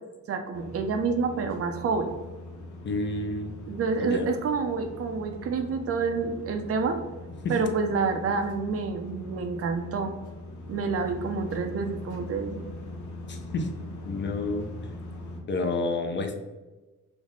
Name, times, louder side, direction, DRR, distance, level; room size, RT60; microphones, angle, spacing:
voice 1, 0.3-2.1 3.7-7.0 7.5-10.2 10.7-12.7, right 4 dB, 50° right, 6 dB, 0.5 m, -28 dB
sound 1, 0.5-15.4, left 2 dB, 75° left, 0.8 m, -41 dB
voice 2, 2.8-3.5 4.0-4.3 13.3-13.7 14.1-14.7 15.5-16.3, left 3 dB, 40° left, 4 dB, 0.5 m, -29 dB
3.3 x 2.1 x 3.7 m, 1.2 s
cardioid pair, 90°, 30 cm